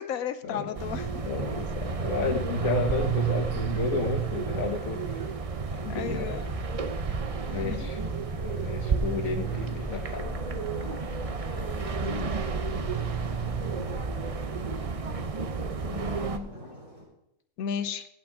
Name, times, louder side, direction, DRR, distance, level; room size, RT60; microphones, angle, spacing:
voice 1, 0.0-1.1 5.9-6.5 7.5-7.9 12.0-12.4 15.8-16.5 17.6-18.1, left 7 dB, 85° left, 11 dB, 1.2 m, -34 dB
sound 1, 0.7-16.4, right 6 dB, 45° right, 0.4 m, -31 dB
voice 2, 1.2-5.1 5.7-6.4 7.5-8.0 8.4-10.4, left 4 dB, 70° left, 5 dB, 1.8 m, -32 dB
sound 2, 6.4-14.4, left 1 dB, 15° left, 2.6 m, -41 dB
sound 3, 7.0-17.0, equal, 65° right, 5.2 m, -44 dB
18.0 x 8.6 x 3.5 m, 0.79 s
omnidirectional pair, 1.5 m